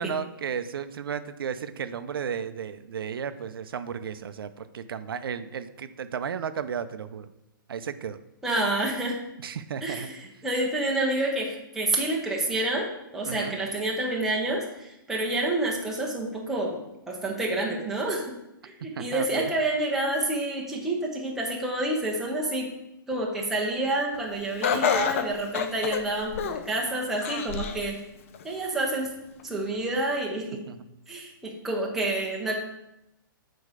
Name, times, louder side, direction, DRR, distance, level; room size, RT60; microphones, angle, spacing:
voice 1, 0.0-7.3 7.7-8.2 9.4-10.1 13.3-13.6 18.9-19.5 30.7-30.8, right 7 dB, 85° right, 11 dB, 0.5 m, -34 dB
voice 2, 8.4-9.2 9.8-16.8 17.1-18.4 18.6-22.7 23.1-28.0 28.4-29.1 29.4-30.6 31.1-32.5, right 2 dB, 5° right, -2 dB, 0.6 m, -28 dB
Laughter, 24.6-26.7 27.2-27.8 28.3-28.4 29.4-29.5, left 7 dB, 35° left, 0.4 m, -28 dB
6.5 x 4.2 x 4.8 m, 0.88 s
hypercardioid pair, 170°, 12 cm